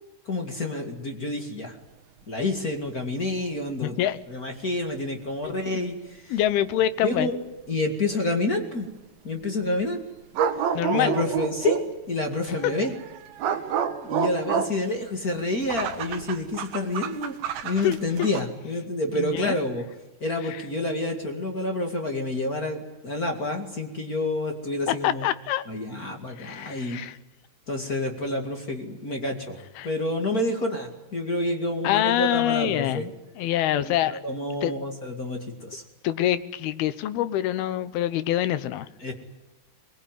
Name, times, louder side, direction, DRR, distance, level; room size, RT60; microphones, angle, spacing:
voice 1, 0.3-1.7 2.3-4.0 4.3-6.3 7.0-7.4 7.7-8.9 9.2-10.0 10.9-12.9 14.0-17.3 17.6-19.8 20.2-25.3 25.7-27.0 27.7-29.6 29.8-33.1 33.7-35.8 39.0-39.1, left 2 dB, 30° left, 3 dB, 2.0 m, -28 dB
voice 2, 3.8-4.2 5.7-5.9 6.3-7.3 10.7-11.2 17.8-18.3 19.2-19.6 24.9-25.6 26.4-27.2 29.8-29.9 30.3-30.4 31.8-34.2 34.6-34.7 36.0-38.9, left 12 dB, 80° left, 13 dB, 2.9 m, -25 dB
Ext dog+curica, 5.4-5.5 6.5-6.6 10.3-11.9 12.6-18.4, right 8 dB, 70° right, 3.2 m, -29 dB
22.5 x 21.5 x 9.2 m, 1.1 s
omnidirectional pair, 4.6 m